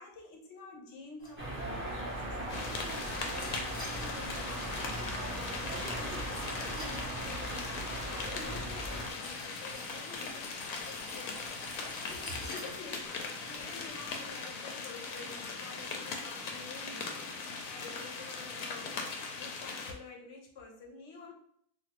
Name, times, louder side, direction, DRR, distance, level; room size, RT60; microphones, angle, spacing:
voice 1, 0.0-18.9 19.3-21.3, left 3 dB, 60° left, 0 dB, 0.9 m, -49 dB
sound 1, 1.2-14.5, left 1 dB, 40° left, 0.3 m, -51 dB
sound 2, 1.4-9.1, right 1 dB, 15° right, 0.6 m, -38 dB
sound 3, 2.5-19.9, left 4 dB, 85° left, 1.0 m, -40 dB
3.3 x 2.3 x 2.9 m, 0.66 s
omnidirectional pair, 1.4 m